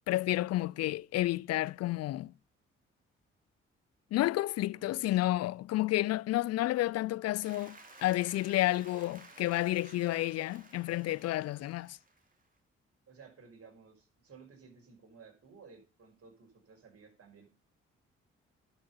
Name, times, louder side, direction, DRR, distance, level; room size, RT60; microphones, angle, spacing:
voice 1, 0.1-2.3 4.1-12.0, left 16 dB, 60° left, 0.4 m, -31 dB
voice 2, 4.7-5.2 13.1-17.5, right 5 dB, 55° right, 5.3 m, -56 dB
Applause, 7.4-12.5, right 2 dB, 30° right, 3.7 m, -55 dB
11.5 x 6.3 x 5.6 m
hypercardioid pair, 45°, 29 cm